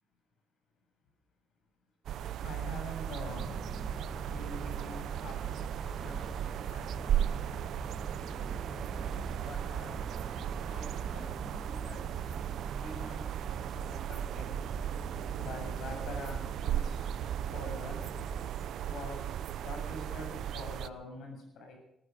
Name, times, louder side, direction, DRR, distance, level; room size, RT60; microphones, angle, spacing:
sound 1, 2.1-20.9, right 10 dB, 75° right, 0.7 m, -36 dB
voice 1, 2.4-4.0 4.3-5.4 5.8-6.3 6.7-7.4 8.2-8.8 9.4-10.0 10.7-12.0 12.8-13.3 13.9-14.6 15.4-18.1 18.8-21.8, left 2 dB, 75° left, 3 dB, 7.5 m, -46 dB
sound 2, 3.3-18.5, right 2 dB, 15° right, 1.4 m, -44 dB
19.5 x 14.0 x 5.3 m, 0.84 s
cardioid pair, 90°, 0 cm